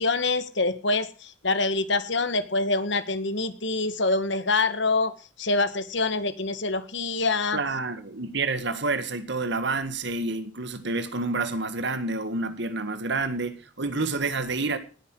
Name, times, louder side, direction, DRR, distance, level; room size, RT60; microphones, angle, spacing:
voice 1, 0.0-7.8, left 3 dB, 65° left, 1.8 m, -26 dB
voice 2, 7.5-14.8, right 3 dB, 60° right, 1.8 m, -28 dB
19.0 x 10.0 x 4.7 m
head